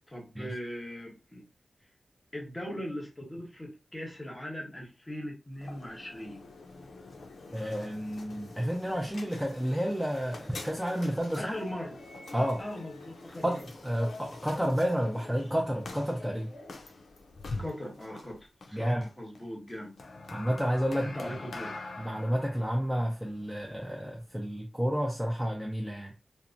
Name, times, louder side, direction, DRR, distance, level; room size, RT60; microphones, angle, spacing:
voice 1, 0.1-1.4 2.3-6.4 11.4-12.0 12.3-13.6 17.6-20.0 21.0-21.8, equal, 20° left, 0.9 m, -40 dB
sound 1, 5.5-24.6, left 2 dB, 85° left, 0.5 m, -45 dB
voice 2, 7.5-11.5 12.3-12.6 13.4-16.6 18.7-19.1 20.3-21.3 22.0-26.1, equal, ahead, 0.5 m, -30 dB
2.9 x 2.1 x 2.5 m
wide cardioid pair, 105°, 0 cm